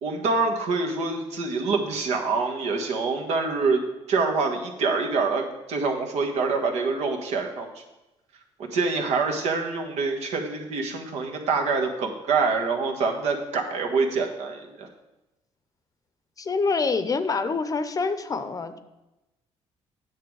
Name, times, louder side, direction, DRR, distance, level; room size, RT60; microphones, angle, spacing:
voice 1, 0.0-7.8 8.7-14.9, right 4 dB, 80° right, 2 dB, 1.4 m, -26 dB
voice 2, 16.4-18.8, left 4 dB, 30° left, 10 dB, 0.7 m, -26 dB
9.4 x 6.7 x 4.7 m, 0.98 s
cardioid pair, 110°, 11 cm